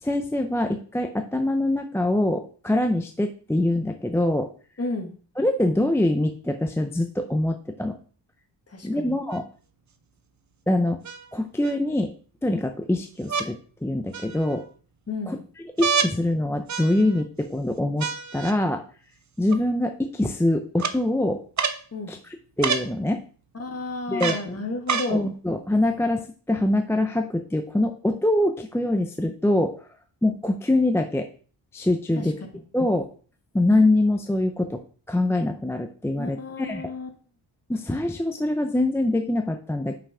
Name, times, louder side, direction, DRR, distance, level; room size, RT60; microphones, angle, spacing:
voice 1, 0.0-4.5 5.4-8.0 8.8-9.5 10.7-11.0 11.3-12.1 12.4-14.6 15.3-15.4 15.8-18.8 19.4-21.4 22.1-23.2 24.1-24.4 25.1-29.8 30.2-31.3 31.7-32.4 32.7-33.1 33.5-34.8 35.1-36.9 37.7-40.0, left 1 dB, 5° left, 5 dB, 0.5 m, -24 dB
voice 2, 4.8-5.1 8.7-9.2 15.1-15.4 21.9-22.1 23.6-25.3 32.2-32.3 36.2-37.1, left 2 dB, 35° left, 4 dB, 1.6 m, -32 dB
sound 1, 9.3-9.4 11.0-11.7 13.3-13.5 14.1-14.7 15.8-16.1 16.7-17.2 18.0-18.5 19.5-19.6 20.8-21.0 21.6-21.8 22.6-22.9 24.2-24.5 24.9-25.1 26.0-26.1, right 6 dB, 40° right, 0.6 m, -27 dB
5.8 x 5.4 x 4.8 m, 0.41 s
wide cardioid pair, 125°, 45 cm